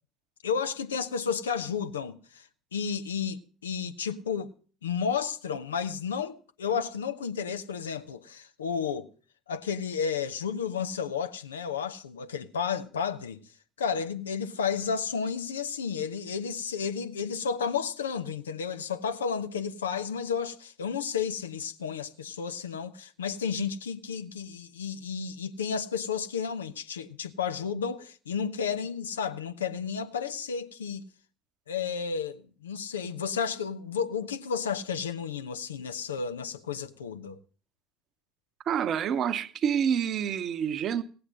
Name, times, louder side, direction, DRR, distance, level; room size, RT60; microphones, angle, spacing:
voice 1, 0.4-4.5 4.8-9.1 9.5-13.4 13.8-31.0 31.7-37.4, left 6 dB, 80° left, 0.8 m, -32 dB
voice 2, 38.7-41.0, right 8 dB, 45° right, 0.9 m, -27 dB
17.5 x 8.0 x 6.5 m
figure-of-eight pair, 60°, 0 cm